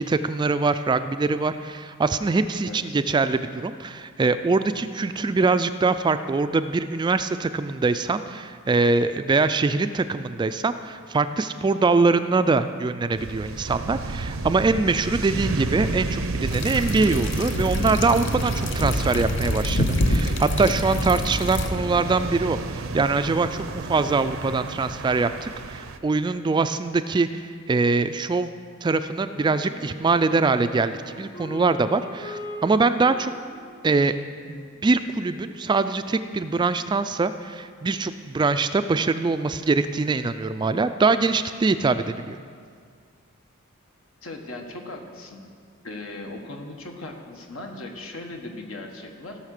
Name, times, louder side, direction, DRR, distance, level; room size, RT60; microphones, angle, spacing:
voice 1, 0.0-28.5 28.8-33.3 33.8-34.1 34.5-42.4, right 3 dB, 20° right, 11 dB, 0.3 m, -23 dB
voice 2, 2.6-3.0 44.2-45.4 45.8-49.4, left 2 dB, 80° left, 2 dB, 1.5 m, -38 dB
sound 1, 13.2-26.0, right 3 dB, 75° right, 0.7 m, -30 dB
sound 2, 16.5-21.7, left 1 dB, 60° left, 0.8 m, -27 dB
Wind instrument woodwind instrument, 29.2-35.8, equal, 40° left, 2.1 m, -42 dB
16.0 x 5.7 x 6.5 m, 2.1 s
head